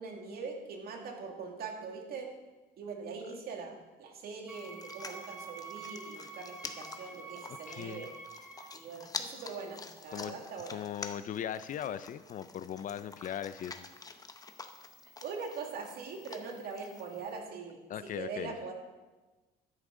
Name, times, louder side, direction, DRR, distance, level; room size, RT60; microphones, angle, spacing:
voice 1, 0.0-2.3 2.8-8.1 8.7-10.8 15.2-17.8 18.1-18.7, right 5 dB, 65° right, 2 dB, 2.2 m, -42 dB
sound 1, 4.5-17.4, left 4 dB, 20° left, 0.8 m, -47 dB
Wind instrument woodwind instrument, 4.5-8.8, right 3 dB, 10° right, 3.5 m, -47 dB
voice 2, 7.3-8.1 8.6-8.7 10.1-10.3 10.7-13.9 17.9-18.5, left 10 dB, 50° left, 14 dB, 0.5 m, -39 dB
13.5 x 9.9 x 3.8 m, 1.2 s
cardioid pair, 110°, 17 cm